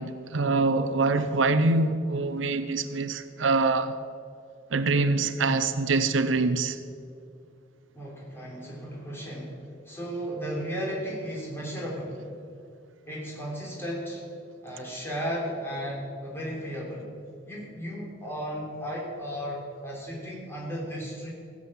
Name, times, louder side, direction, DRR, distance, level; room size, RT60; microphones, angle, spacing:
voice 1, 0.0-3.9 4.7-6.8, right 3 dB, 85° right, 0.7 m, -24 dB
voice 2, 7.9-9.6 9.8-12.2 13.1-14.2 14.6-17.1 17.4-21.3, equal, 10° left, 3.3 m, -35 dB
16.5 x 7.5 x 7.4 m
head